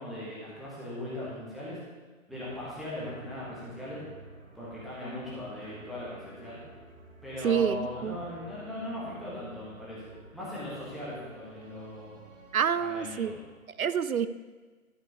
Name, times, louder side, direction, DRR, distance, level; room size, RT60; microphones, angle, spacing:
voice 1, 0.0-1.8 2.3-4.0 4.5-6.6 7.2-12.2 12.8-13.4, left 1 dB, ahead, -9 dB, 1.3 m, -39 dB
sound 1, 2.3-13.3, right 2 dB, 55° right, 1.9 m, -51 dB
voice 2, 7.4-8.2 12.5-13.3 13.8-14.3, right 8 dB, 85° right, 14 dB, 0.5 m, -27 dB
12.0 x 5.9 x 4.7 m, 1.4 s
figure-of-eight pair, 145°, 42 cm